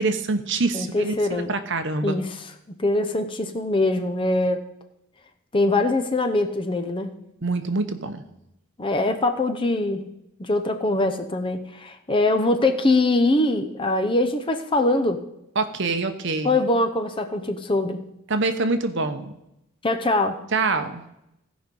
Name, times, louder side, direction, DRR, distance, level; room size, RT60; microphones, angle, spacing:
voice 1, 0.0-2.2 7.4-8.2 15.6-16.6 18.3-19.3 20.5-21.0, right 3 dB, 55° right, 9 dB, 0.9 m, -25 dB
voice 2, 0.7-1.5 2.0-2.4 2.8-4.6 5.5-7.1 8.8-10.0 10.4-15.2 16.4-18.0 19.8-20.4, left 2 dB, 25° left, 8 dB, 0.7 m, -22 dB
15.5 x 5.2 x 5.3 m, 0.84 s
head